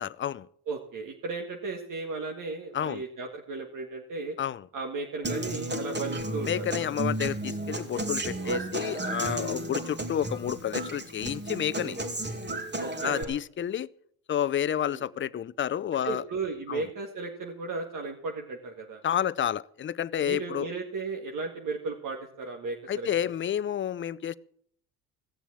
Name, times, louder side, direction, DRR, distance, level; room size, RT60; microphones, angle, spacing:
voice 1, 0.0-0.5 2.7-3.0 4.4-4.7 6.5-12.0 13.0-13.9 14.3-16.2 16.7-16.8 19.0-20.7 22.9-24.4, left 10 dB, 30° left, 0.6 m, -30 dB
voice 2, 0.7-4.4 4.7-6.6 8.4-8.6 8.9-9.3 9.7-9.9 11.8-12.1 12.8-13.4 14.9-15.1 16.0-19.0 20.2-23.1, right 3 dB, 50° right, 2.0 m, -35 dB
Human voice / Acoustic guitar, 5.2-13.2, right 1 dB, 25° right, 2.6 m, -33 dB
16.5 x 7.1 x 8.5 m
supercardioid pair, 75°, 40 cm